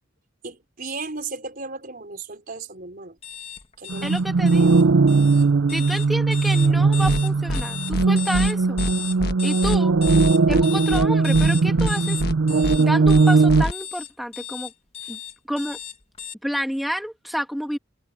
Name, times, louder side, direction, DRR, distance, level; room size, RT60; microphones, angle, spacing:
voice 1, 0.4-3.2 3.8-4.1 15.0-15.1, right 3 dB, 50° right, 4.4 m, -35 dB
sound 1, 3.2-16.3, left 9 dB, 30° left, 1.8 m, -35 dB
sound 2, 3.9-13.6, right 4 dB, 90° right, 0.5 m, -19 dB
voice 2, 4.0-4.8 5.7-8.8 9.4-9.9 10.5-12.2 12.8-14.7 15.1-15.2 15.5-15.8 16.4-17.8, equal, ahead, 2.3 m, -29 dB
sound 3, 7.0-7.2 7.5-7.6 7.9-8.1 8.3-8.5 8.8-8.9 9.2-9.3 9.6-9.8 10.0-10.6 10.9-11.1 11.3-11.5 11.8-11.9 12.2-12.3 12.6-12.8 13.0-13.2 13.5-13.7, left 1 dB, 55° left, 1.3 m, -26 dB
head